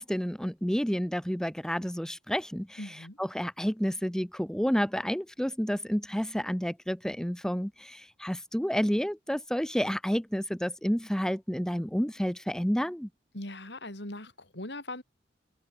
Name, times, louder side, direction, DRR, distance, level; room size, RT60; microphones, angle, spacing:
voice 1, 0.0-13.1, equal, 5° left, 0.9 m, -30 dB
voice 2, 2.8-3.2 13.3-15.0, left 1 dB, 70° left, 6.3 m, -40 dB
head